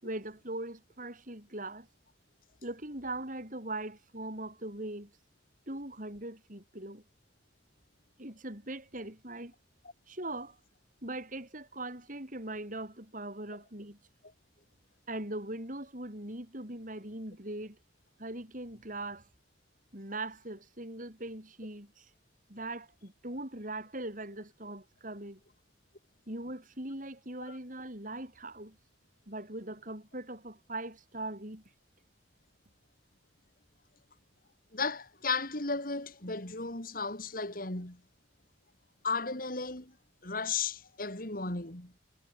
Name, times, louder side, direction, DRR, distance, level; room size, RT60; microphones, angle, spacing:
voice 1, 0.0-1.9 2.6-5.1 5.7-7.0 8.2-9.5 10.1-10.6 11.0-14.0 15.1-17.8 18.2-19.3 19.9-22.1 22.5-25.4 26.3-28.8 29.3-31.6, right 2 dB, 45° right, 7.8 m, -40 dB
voice 2, 34.7-38.0 39.0-39.9 40.2-41.9, left 4 dB, 50° left, 3.6 m, -35 dB
head